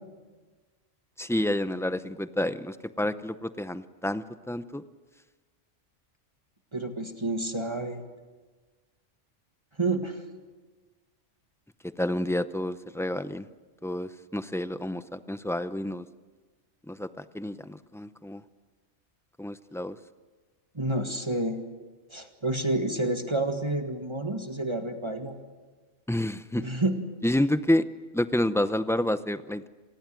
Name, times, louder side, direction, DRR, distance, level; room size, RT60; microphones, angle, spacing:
voice 1, 1.2-4.8 12.0-13.4 13.8-16.0 16.9-18.4 19.4-19.9 26.1-26.6 27.2-27.8 28.1-29.7, left 1 dB, 5° left, 12 dB, 0.4 m, -29 dB
voice 2, 6.7-8.0 9.8-10.2 20.8-21.6 22.1-25.4 26.6-27.0, right 2 dB, 25° right, 5 dB, 1.8 m, -29 dB
27.0 x 20.0 x 7.7 m, 1.3 s
omnidirectional pair, 1.3 m